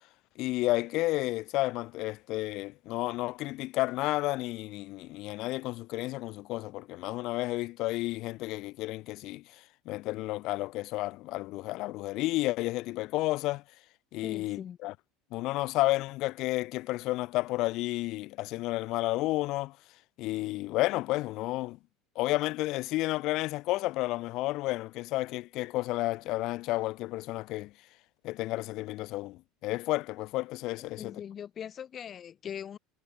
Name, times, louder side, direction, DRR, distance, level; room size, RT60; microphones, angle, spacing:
voice 1, 0.4-13.6 14.1-14.9 15.3-19.8 20.2-21.8 22.2-27.7 28.2-31.2, left 19 dB, 50° left, 4.0 m, -31 dB
voice 2, 14.2-14.8 30.9-32.8, left 8 dB, 35° left, 5.0 m, -41 dB
figure-of-eight pair, 70°, 0 cm